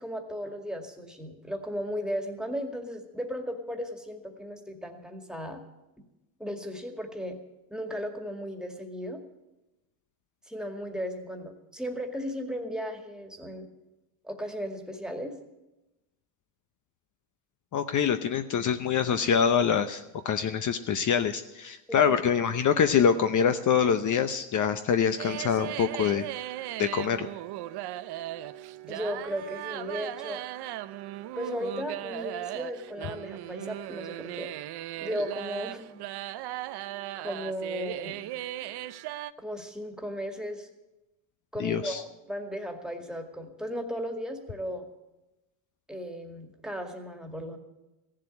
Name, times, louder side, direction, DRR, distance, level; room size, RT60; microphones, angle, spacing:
voice 1, 0.0-5.6 6.4-7.4 7.7-9.2 10.5-13.7 14.2-15.4 21.9-22.2 22.7-22.8 28.9-30.4 31.4-34.5 35.0-36.0 37.1-38.2 39.4-40.7 41.5-44.8 45.9-47.6, equal, ahead, 4 dB, 2.0 m, -35 dB
voice 2, 17.7-26.3 26.8-27.3 41.6-42.0, left 7 dB, 40° left, 9 dB, 0.8 m, -25 dB
sound 1, 25.2-39.3, right 14 dB, 50° right, 0.7 m, -37 dB
15.5 x 7.5 x 9.7 m, 1.0 s
cardioid pair, 115°, 49 cm